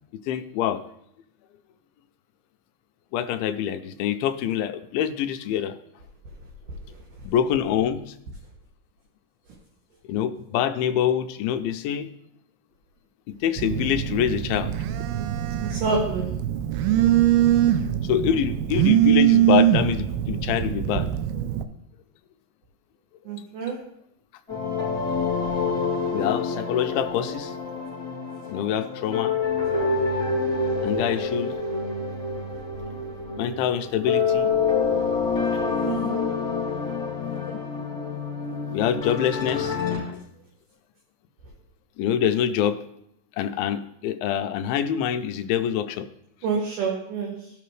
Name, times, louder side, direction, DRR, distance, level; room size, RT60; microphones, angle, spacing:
voice 1, 0.3-0.8 3.1-5.7 7.2-8.1 10.1-12.1 13.3-14.7 18.1-21.1 26.1-27.5 28.5-29.3 30.8-31.6 33.4-34.6 37.5-37.6 38.7-40.2 42.0-42.8 43.4-46.1, left 9 dB, 80° left, 9 dB, 2.3 m, -25 dB
Telephone, 13.6-21.6, right 12 dB, 85° right, 2.5 m, -22 dB
voice 2, 15.7-16.3 23.3-23.8 35.8-36.1 46.4-47.5, right 4 dB, 65° right, -1 dB, 2.4 m, -27 dB
sound 1, 24.5-40.0, left 4 dB, 5° left, 3.7 m, -27 dB
16.0 x 5.8 x 3.2 m, 0.75 s
omnidirectional pair, 4.4 m